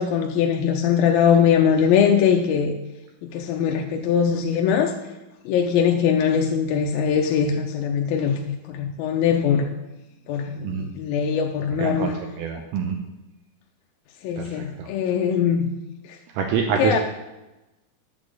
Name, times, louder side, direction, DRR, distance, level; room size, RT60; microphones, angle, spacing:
voice 1, 0.0-2.7 3.2-4.9 5.5-9.7 10.3-12.1 14.2-15.7 16.0-16.2 16.8-17.0, left 7 dB, 80° left, 3 dB, 2.1 m, -21 dB
voice 2, 11.8-12.1 12.4-13.0 14.4-14.9 16.3-17.0, right 6 dB, 80° right, 3 dB, 2.5 m, -26 dB
10.5 x 4.1 x 7.8 m, 1.0 s
omnidirectional pair, 4.7 m